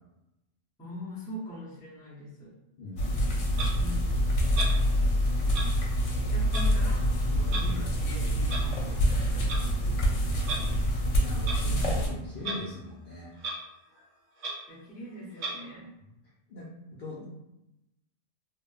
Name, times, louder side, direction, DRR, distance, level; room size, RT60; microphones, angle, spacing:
voice 1, 0.8-2.5 3.7-4.4 6.1-10.2 14.7-15.9, equal, 10° left, -7 dB, 0.5 m, -43 dB
voice 2, 2.8-3.5 7.3-7.8 10.3-13.3 16.5-17.3, left 2 dB, 55° left, -7 dB, 0.6 m, -42 dB
sound 1, 3.0-12.1, equal, 80° left, 0.9 m, -26 dB
Clock, 3.5-3.7 4.5-4.8 5.5-5.7 6.5-6.7 7.5-7.6 8.5-8.6 9.3-9.6 10.4-10.6 11.4-11.6 12.4-12.6 12.9-13.0 13.4-13.6 14.0-14.1 14.4-14.6 15.4-15.6, right 2 dB, 85° right, 1.0 m, -34 dB
3.0 x 2.1 x 2.3 m, 0.90 s
omnidirectional pair, 1.2 m